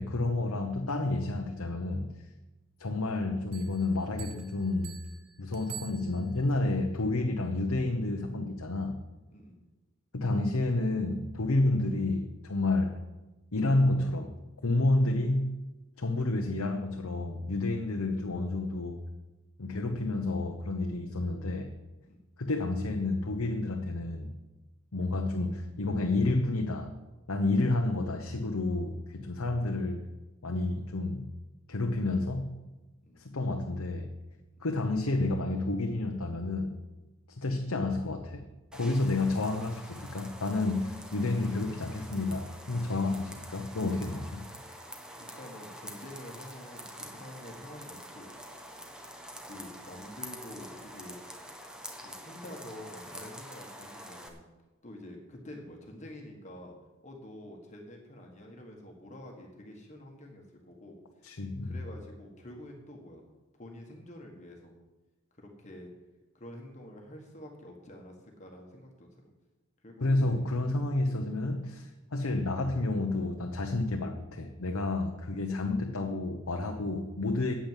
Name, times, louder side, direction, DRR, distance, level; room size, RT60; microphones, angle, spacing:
voice 1, 0.0-2.1 2.8-5.0 5.4-9.0 10.1-13.0 13.5-14.3 14.6-15.6 16.0-19.0 19.6-21.7 22.4-24.3 24.9-26.9 27.3-30.0 30.4-31.3 31.7-32.6 33.2-34.1 34.6-36.8 37.4-38.5 38.7-44.5 61.2-61.7 70.0-77.5, left 2 dB, 75° left, 3 dB, 0.9 m, -30 dB
Bell, 3.5-6.6, right 10 dB, 75° right, 1.2 m, -48 dB
voice 2, 9.3-9.6 22.1-22.2 33.0-33.2 45.2-48.3 49.4-51.2 52.0-54.5 54.8-56.7 57.0-61.0 61.6-63.2 63.5-64.7 65.4-65.9 66.3-69.1 69.8-70.5, left 1 dB, 30° left, 1 dB, 1.6 m, -47 dB
sound 1, 38.7-54.3, equal, 5° right, 1.0 m, -46 dB
9.1 x 8.6 x 7.5 m, 1.1 s
head